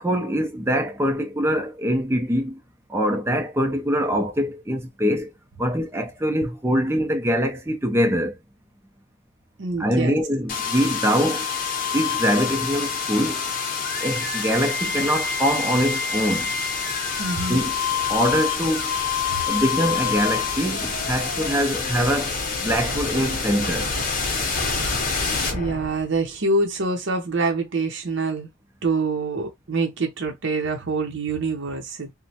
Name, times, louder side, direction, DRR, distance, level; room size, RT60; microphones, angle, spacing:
voice 1, 0.0-2.6 2.9-5.3 5.6-8.4 9.8-11.5 11.9-13.5 14.0-16.5 17.5-17.7 18.1-18.9 19.5-23.9, equal, 10° right, 0.5 m, -23 dB
voice 2, 9.6-10.2 17.2-17.6 19.3-19.4 25.1-28.5 28.8-32.1, right 3 dB, 60° right, 0.7 m, -26 dB
sound 1, 10.5-26.3, left 5 dB, 40° left, 0.8 m, -26 dB
3.0 x 2.1 x 2.7 m
head